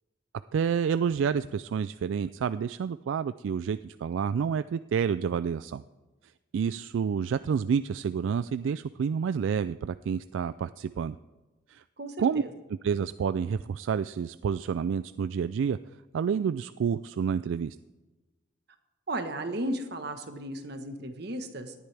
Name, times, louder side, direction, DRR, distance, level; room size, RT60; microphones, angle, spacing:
voice 1, 0.5-5.8 6.5-11.2 11.7-11.8 12.2-12.4 12.8-15.8 16.1-17.8, right 7 dB, 80° right, 13 dB, 0.3 m, -29 dB
voice 2, 12.0-12.5 19.1-21.7, right 1 dB, 60° right, 6 dB, 1.3 m, -35 dB
18.5 x 11.0 x 3.4 m, 1.2 s
head